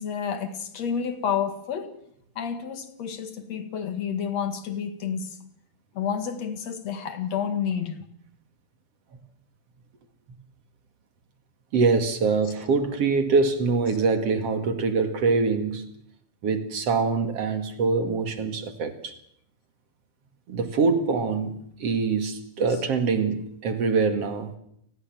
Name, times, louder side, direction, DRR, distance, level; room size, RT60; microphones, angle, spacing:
voice 1, 0.0-2.0 2.4-5.4 5.9-8.0, left 7 dB, 65° left, 3.1 m, -30 dB
voice 2, 11.7-15.9 16.4-19.2 20.5-24.6, right 4 dB, 55° right, 2.9 m, -24 dB
29.5 x 19.5 x 7.7 m
omnidirectional pair, 3.3 m